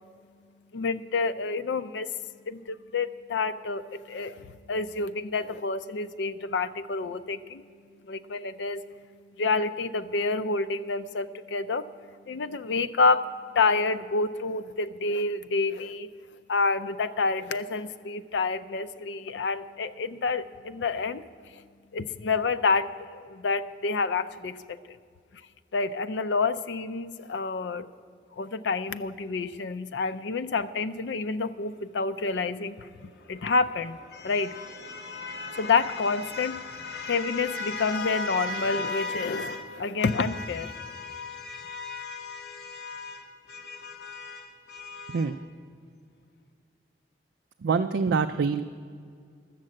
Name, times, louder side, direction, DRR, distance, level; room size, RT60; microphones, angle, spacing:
voice 1, 0.7-2.1 2.5-7.6 8.0-8.8 9.4-11.9 12.3-16.1 16.5-21.6 21.9-25.0 25.7-27.9 28.4-32.9 33.3-34.0 34.2-34.5 35.6-36.6 37.0-40.7, left 4 dB, 90° left, 12 dB, 0.5 m, -28 dB
sound 1, 33.0-39.7 40.0-45.4, left 3 dB, 75° left, 0.9 m, -37 dB
voice 2, 47.6-48.6, right 5 dB, 90° right, 7 dB, 0.4 m, -25 dB
12.5 x 7.5 x 7.6 m, 2.2 s
head